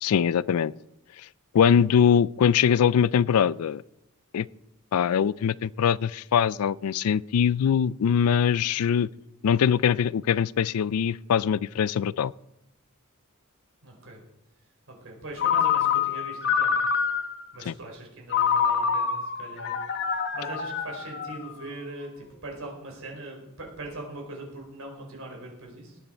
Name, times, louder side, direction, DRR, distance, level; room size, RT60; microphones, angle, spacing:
voice 1, 0.0-0.7 1.5-3.8 4.3-4.5 4.9-9.1 9.4-12.3 17.7-17.8, left 7 dB, 85° left, 21 dB, 0.4 m, -22 dB
voice 2, 13.8-14.2 14.9-16.7 17.5-19.8 20.1-26.0, right 2 dB, 65° right, 1 dB, 4.5 m, -41 dB
Ringtone, 15.4-17.5 18.3-21.6, left 7 dB, 50° left, 1.1 m, -26 dB
18.5 x 9.4 x 4.4 m, 0.87 s
head